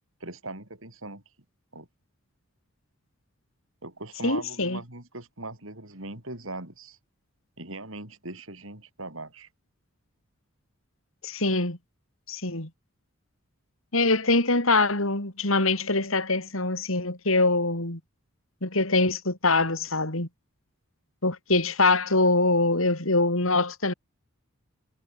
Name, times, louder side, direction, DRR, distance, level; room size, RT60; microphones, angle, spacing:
voice 1, 0.2-1.2 1.7-1.9 3.8-7.0 7.6-9.5, right 2 dB, 65° right, 6.5 m, -40 dB
voice 2, 4.2-4.8 11.2-11.8 12.3-12.7 13.9-18.0 18.6-20.3 21.2-23.9, left 3 dB, 65° left, 4.6 m, -24 dB
head